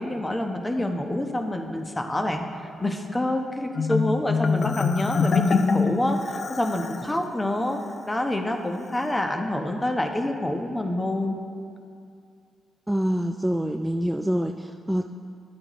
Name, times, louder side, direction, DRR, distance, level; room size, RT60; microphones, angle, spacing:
voice 1, 0.0-7.8 8.1-11.4, left 1 dB, 20° left, 4 dB, 1.0 m, -27 dB
Marimba xylophone, 3.8-7.1, left 5 dB, 55° left, 0.4 m, -24 dB
voice 2, 12.9-15.1, equal, 10° right, 5 dB, 0.3 m, -26 dB
11.5 x 8.5 x 3.1 m, 2.4 s
supercardioid pair, 60°, 0 cm